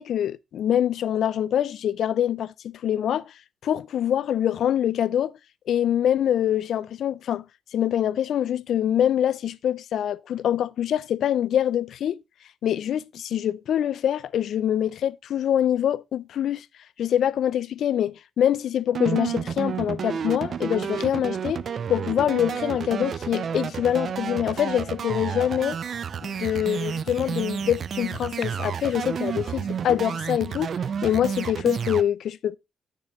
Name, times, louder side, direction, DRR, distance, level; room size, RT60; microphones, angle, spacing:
voice 1, 0.0-3.3 3.6-5.4 5.7-7.5 7.7-12.2 12.6-16.7 17.0-21.6 21.9-25.8 26.2-32.6, left 10 dB, 70° left, 0.3 m, -25 dB
sound 1, 18.9-32.0, right 7 dB, 50° right, 0.4 m, -31 dB
9.0 x 6.5 x 3.0 m
cardioid pair, 125°, 0 cm